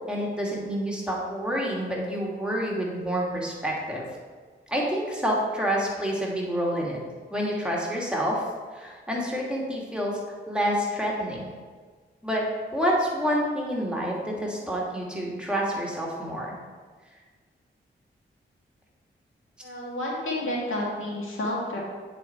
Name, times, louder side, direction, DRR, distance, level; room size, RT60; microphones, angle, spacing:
voice 1, 0.1-4.1 4.7-7.0 7.3-8.4 8.7-10.1 10.5-11.5 12.2-12.5 12.7-16.6, equal, 5° right, -3 dB, 2.2 m, -28 dB
voice 2, 19.6-21.8, left 1 dB, 75° left, -3 dB, 1.9 m, -30 dB
9.0 x 4.2 x 4.4 m, 1.5 s
cardioid pair, 50°, 21 cm